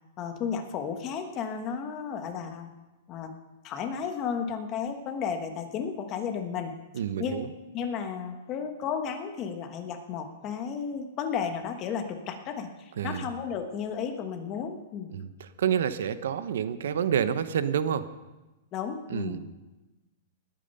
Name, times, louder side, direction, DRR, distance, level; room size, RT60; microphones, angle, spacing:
voice 1, 0.2-2.7 3.1-3.3 3.6-6.7 7.2-7.5 7.7-15.1 18.7-19.4, left 7 dB, 25° left, 6 dB, 1.3 m, -33 dB
voice 2, 6.9-7.5 13.0-13.3 15.1-18.1 19.1-19.4, right 8 dB, 75° right, 13 dB, 0.9 m, -28 dB
19.5 x 9.0 x 5.6 m, 1.1 s
supercardioid pair, 165°, 0 cm